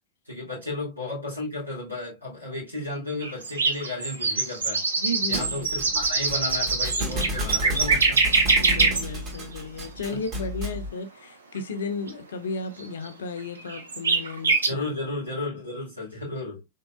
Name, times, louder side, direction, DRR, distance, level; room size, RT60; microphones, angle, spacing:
voice 1, 0.3-4.8 5.3-8.2 10.1-10.2 14.7-16.6, left 2 dB, 90° right, 2.5 m, -33 dB
Nightingale singing, 3.2-9.0 9.3-9.4 9.8-9.9 12.1-12.2 12.8-12.9 13.1-13.2 13.7-14.7, right 4 dB, 75° right, 0.7 m, -23 dB
voice 2, 5.0-6.2 8.6-14.8, left 3 dB, 65° left, 0.7 m, -34 dB
Thump thud, 5.3-10.9, equal, 30° right, 1.9 m, -32 dB
4.0 x 3.7 x 2.2 m
figure-of-eight pair, 90°, 0 cm